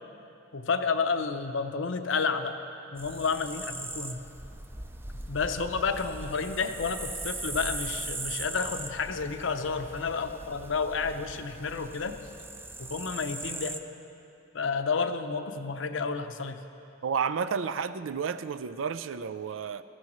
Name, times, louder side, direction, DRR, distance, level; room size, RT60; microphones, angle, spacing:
voice 1, 0.5-2.6 2.9-4.2 5.3-12.2 12.8-13.8 14.5-16.6, left 5 dB, 75° left, 8 dB, 0.7 m, -30 dB
sound 1, 3.0-13.8, right 2 dB, 10° right, 0.4 m, -39 dB
voice 2, 17.0-19.8, right 6 dB, 90° right, 13 dB, 0.4 m, -31 dB
19.0 x 14.5 x 3.1 m, 2.7 s
head